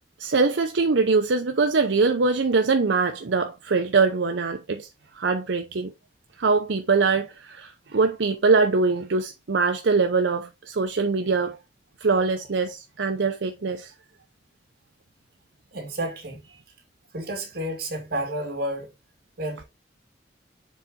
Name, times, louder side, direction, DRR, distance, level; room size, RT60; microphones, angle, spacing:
voice 1, 0.2-4.9 5.1-5.9 6.4-11.6 12.0-13.9, right 4 dB, 80° right, 0.7 m, -23 dB
voice 2, 15.7-16.4 17.1-18.9 19.4-19.6, right 1 dB, 55° right, 2.3 m, -30 dB
7.2 x 3.9 x 3.6 m
head